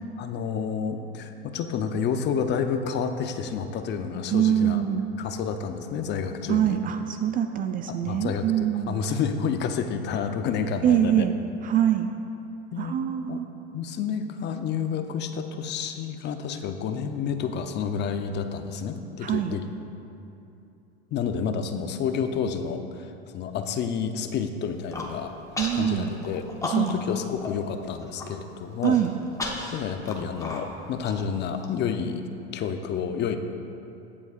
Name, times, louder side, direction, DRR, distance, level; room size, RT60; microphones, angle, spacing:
voice 1, 0.2-4.8 5.2-6.8 7.9-11.3 12.7-13.0 13.3-13.4 13.7-19.6 21.1-25.3 25.7-29.0 29.7-32.2 32.5-33.4, left 6 dB, 35° left, 8 dB, 0.6 m, -29 dB
voice 2, 4.3-5.0 6.5-9.0 10.8-11.3 11.6-12.1 12.8-13.5 19.2-19.5 25.6-26.1 26.7-26.9 28.8-29.1, right 10 dB, 30° right, 7 dB, 0.3 m, -24 dB
Human voice, 24.7-25.1 25.6-25.9 26.2-27.1 27.4-27.5 27.9-28.3 28.8-31.7, left 2 dB, 10° left, 1.1 m, -34 dB
20.5 x 7.2 x 2.4 m, 2.8 s
supercardioid pair, 115°, 32 cm